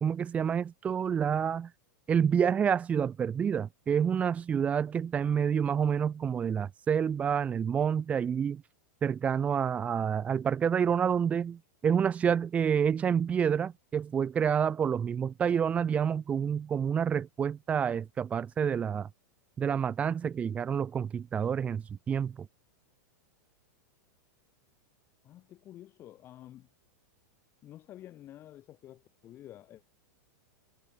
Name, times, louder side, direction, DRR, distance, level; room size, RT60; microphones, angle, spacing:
voice 1, 0.0-1.7 2.1-8.6 9.0-19.1 19.6-22.5, right 7 dB, 15° right, 0.7 m, -28 dB
voice 2, 25.2-26.7 27.6-29.8, left 13 dB, 25° left, 6.2 m, -50 dB
supercardioid pair, 165°, 10 cm